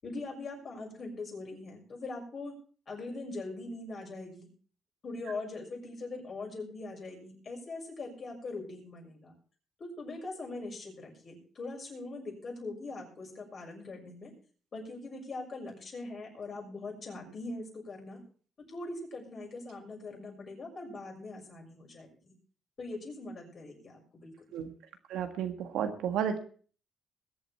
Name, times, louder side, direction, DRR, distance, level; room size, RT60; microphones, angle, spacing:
voice 1, 0.0-2.5 2.9-4.5 5.0-9.3 9.8-14.3 14.7-18.2 18.7-22.3 22.8-24.3, left 2 dB, 45° left, 1 dB, 6.4 m, -41 dB
voice 2, 25.1-26.4, right 8 dB, 85° right, 6 dB, 1.7 m, -32 dB
21.0 x 8.2 x 4.4 m, 0.43 s
cardioid pair, 90°, 0 cm